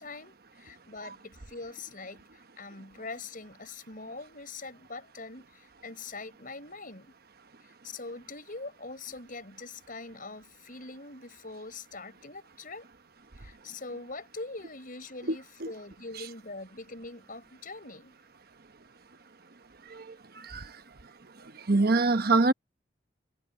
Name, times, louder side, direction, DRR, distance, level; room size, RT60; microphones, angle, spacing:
voice 1, 0.0-2.2 2.6-7.1 7.6-12.9 13.4-18.1, left 3 dB, 50° left, 7.0 m, -43 dB
voice 2, 21.7-22.5, right 3 dB, 55° right, 1.1 m, -22 dB
head